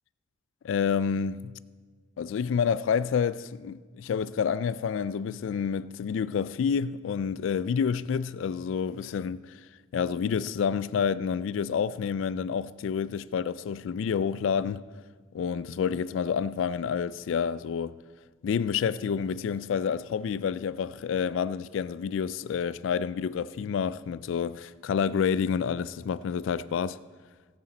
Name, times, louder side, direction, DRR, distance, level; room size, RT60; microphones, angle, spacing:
voice 1, 0.6-1.5 2.2-9.6 9.9-14.8 15.3-18.0 18.4-27.0, left 7 dB, 80° left, 0.3 m, -29 dB
16.5 x 8.6 x 4.2 m
head